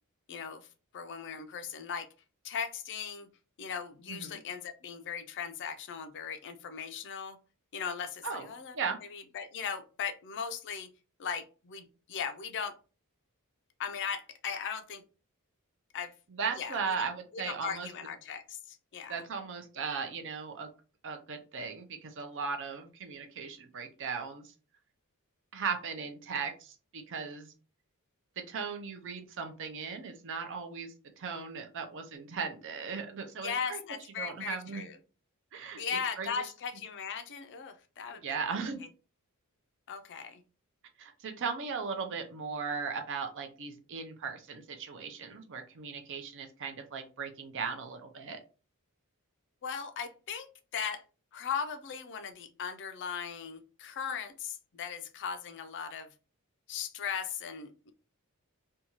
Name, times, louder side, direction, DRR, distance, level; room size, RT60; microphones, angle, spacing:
voice 1, 0.3-0.7 0.9-2.1 2.4-3.3 3.6-7.4 7.7-8.7 9.1-10.9 11.2-12.7 13.8-15.0 15.9-16.1 16.6-17.1 17.3-19.2 33.4-35.0 35.7-38.2 39.9-40.4 49.6-51.0 51.3-56.1 56.7-57.9, left 7 dB, 55° left, 9 dB, 0.4 m, -38 dB
voice 2, 16.3-17.9 19.1-20.7 21.0-24.5 25.5-27.5 28.4-33.8 34.2-34.9 35.5-36.3 38.1-38.8 41.0-48.4, right 5 dB, 55° right, 6 dB, 0.5 m, -37 dB
2.6 x 2.3 x 2.9 m, 0.35 s
head